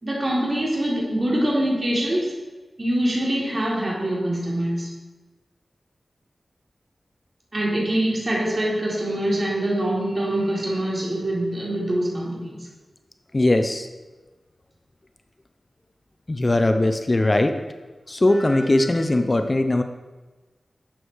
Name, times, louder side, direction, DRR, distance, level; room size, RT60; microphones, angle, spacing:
voice 1, 0.0-2.3 2.8-4.9 7.5-12.7, right 1 dB, 40° right, -3 dB, 3.9 m, -24 dB
voice 2, 13.3-13.9 16.3-17.6 18.1-19.8, left 2 dB, 35° left, 7 dB, 0.8 m, -20 dB
12.0 x 8.5 x 4.8 m, 1.2 s
wide cardioid pair, 60°, 0 cm